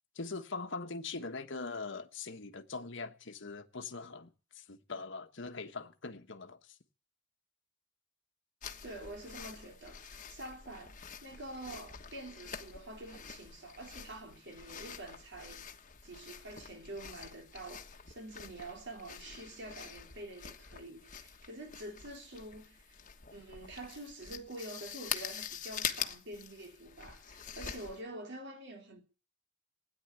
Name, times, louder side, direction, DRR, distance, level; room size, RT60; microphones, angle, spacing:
voice 1, 0.1-6.6, left 4 dB, 65° left, 1.3 m, -42 dB
sound 1, 8.6-28.0, left 8 dB, 40° left, 1.3 m, -45 dB
voice 2, 8.8-23.0 23.3-29.0, right 1 dB, 60° right, 3.4 m, -47 dB
17.0 x 10.0 x 8.3 m
head